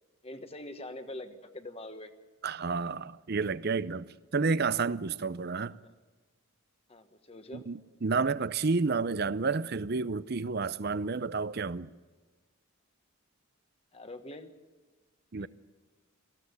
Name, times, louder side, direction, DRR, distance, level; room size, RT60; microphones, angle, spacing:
voice 1, 0.2-2.1 5.8-5.9 6.9-7.6 13.9-14.6 15.4-15.5, left 1 dB, 25° left, 1.3 m, -44 dB
voice 2, 2.4-5.8 7.5-11.9 15.3-15.5, right 4 dB, 45° right, 0.6 m, -30 dB
19.5 x 15.5 x 9.6 m
head